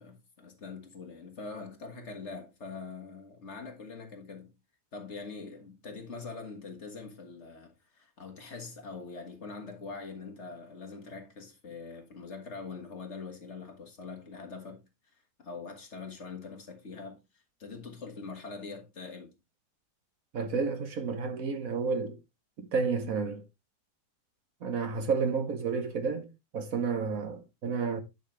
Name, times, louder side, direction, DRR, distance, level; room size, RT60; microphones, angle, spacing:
voice 1, 0.0-4.5 4.9-14.8 15.4-19.3, left 4 dB, 45° left, 1.7 m, -43 dB
voice 2, 20.3-22.2 22.6-23.4 24.6-26.3 26.5-28.0, right 5 dB, 60° right, 1.4 m, -31 dB
10.0 x 5.7 x 3.1 m
omnidirectional pair, 1.8 m